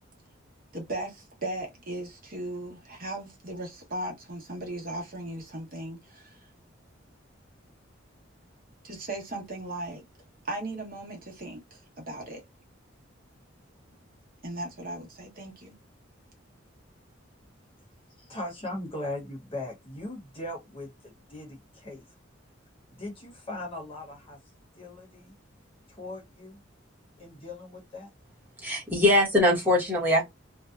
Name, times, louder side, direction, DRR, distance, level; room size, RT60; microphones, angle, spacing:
voice 1, 0.7-6.4 8.8-10.0 10.5-12.4 14.4-15.7, right 1 dB, 45° right, 1.0 m, -37 dB
voice 2, 18.2-22.0 22.9-24.4 24.7-25.3 25.9-26.6 27.2-28.1, left 1 dB, 30° left, 1.0 m, -39 dB
voice 3, 28.6-30.2, left 1 dB, 10° right, 1.0 m, -22 dB
2.6 x 2.2 x 2.3 m
head